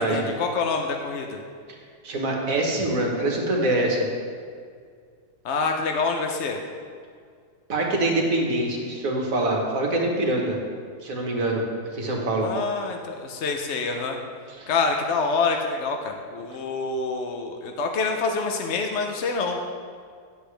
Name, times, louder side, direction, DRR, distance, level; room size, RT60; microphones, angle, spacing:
voice 1, 0.0-1.4 5.4-6.6 12.4-14.2 14.7-19.6, left 4 dB, 60° left, 3 dB, 0.7 m, -26 dB
voice 2, 2.0-4.1 7.7-10.6 11.0-11.6 11.9-12.5 14.6-14.7, right 1 dB, 55° right, -1 dB, 1.7 m, -24 dB
10.5 x 8.2 x 3.3 m, 2.1 s
omnidirectional pair, 1.8 m